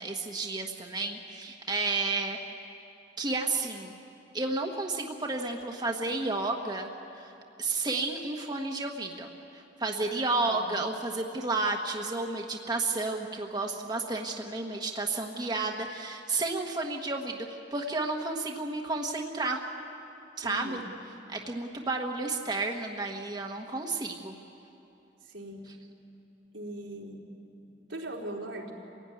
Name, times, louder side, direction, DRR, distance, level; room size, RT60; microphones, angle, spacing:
voice 1, 0.0-2.4 3.2-3.9 4.3-6.9 7.2-7.3 7.6-19.6 20.4-20.8 21.3-24.3, right 3 dB, 20° right, 2 dB, 1.2 m, -32 dB
voice 2, 10.3-10.6 20.4-20.9 25.2-25.7 26.5-27.2 27.9-28.7, right 1 dB, 90° right, -2 dB, 3.7 m, -40 dB
26.5 x 16.5 x 9.7 m, 2.9 s
head